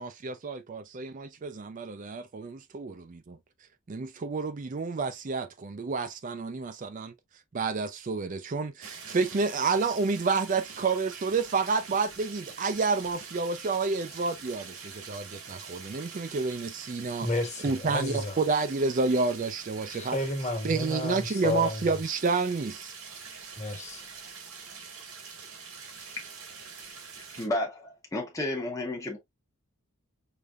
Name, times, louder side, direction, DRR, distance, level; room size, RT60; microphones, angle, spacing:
voice 1, 0.0-3.4 3.9-7.1 7.5-17.3 17.6-20.2 20.6-22.9, right 4 dB, 35° right, 0.4 m, -29 dB
sound 1, 8.8-27.5, right 5 dB, 90° right, 1.8 m, -45 dB
voice 2, 17.2-18.4 19.9-21.8 23.6-24.1, left 2 dB, 30° left, 1.4 m, -32 dB
voice 3, 27.3-29.2, left 1 dB, 15° left, 0.8 m, -32 dB
5.0 x 3.3 x 2.4 m
head